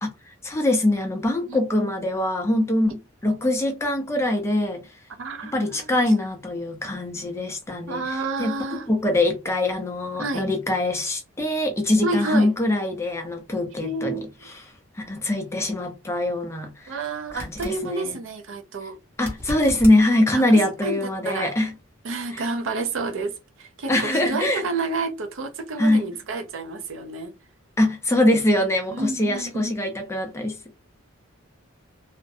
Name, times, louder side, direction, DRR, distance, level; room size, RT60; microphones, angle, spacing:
voice 1, 0.0-4.8 5.5-8.0 8.4-14.2 15.0-17.0 17.3-18.2 19.2-21.7 22.3-22.4 23.9-24.6 25.8-26.1 27.8-30.6, left 1 dB, 15° left, 0.5 m, -23 dB
voice 2, 5.2-5.9 7.9-8.9 10.2-10.5 12.0-12.5 13.8-14.5 16.9-19.0 20.3-20.4 20.8-21.5 22.0-27.3 28.9-29.9, right 3 dB, 70° right, 0.5 m, -30 dB
sound 1, 17.3-17.8 19.2-20.0 23.0-23.1, equal, 10° right, 0.9 m, -35 dB
2.5 x 2.1 x 2.6 m
head